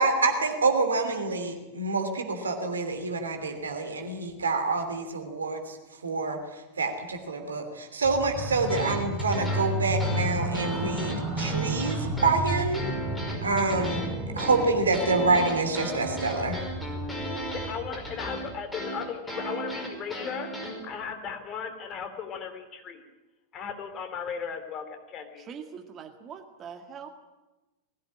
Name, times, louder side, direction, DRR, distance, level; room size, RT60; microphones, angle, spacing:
voice 1, 0.0-5.8 6.0-12.8 13.4-14.0 14.4-16.6, right 3 dB, 70° right, 6 dB, 3.0 m, -27 dB
sound 1, 8.0-18.6, right 1 dB, 5° right, 5.6 m, -33 dB
sound 2, 8.7-20.8, equal, 10° left, 5.4 m, -36 dB
voice 2, 17.5-20.5 20.8-23.1 23.5-25.5, left 7 dB, 30° left, 7 dB, 3.3 m, -36 dB
voice 3, 25.5-27.1, right 7 dB, 30° right, 6 dB, 1.9 m, -42 dB
20.5 x 16.0 x 9.8 m, 1.1 s
figure-of-eight pair, 90°, 0 cm